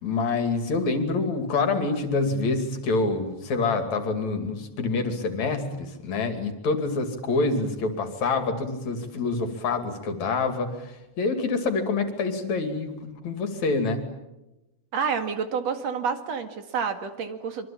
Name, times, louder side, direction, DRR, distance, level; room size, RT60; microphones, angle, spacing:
voice 1, 0.0-14.0, left 3 dB, 65° left, 7 dB, 3.9 m, -26 dB
voice 2, 14.9-17.7, right 6 dB, 60° right, 8 dB, 3.1 m, -29 dB
25.5 x 24.5 x 8.7 m, 0.97 s
omnidirectional pair, 3.5 m